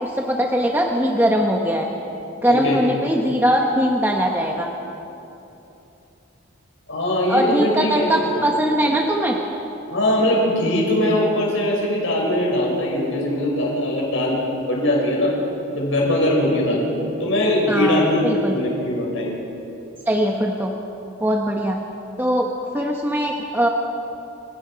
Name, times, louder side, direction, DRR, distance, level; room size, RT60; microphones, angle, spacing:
voice 1, 0.0-1.9 2.4-4.7 7.3-9.4 17.7-18.5 20.1-20.7 21.2-21.8 22.2-22.5 22.7-23.7, equal, 10° right, 0 dB, 1.1 m, -20 dB
voice 2, 2.5-2.8 6.9-8.5 9.9-15.3 15.7-16.9 17.2-19.4, left 1 dB, 65° left, -2 dB, 6.4 m, -21 dB
30.0 x 18.0 x 5.2 m, 2.9 s
head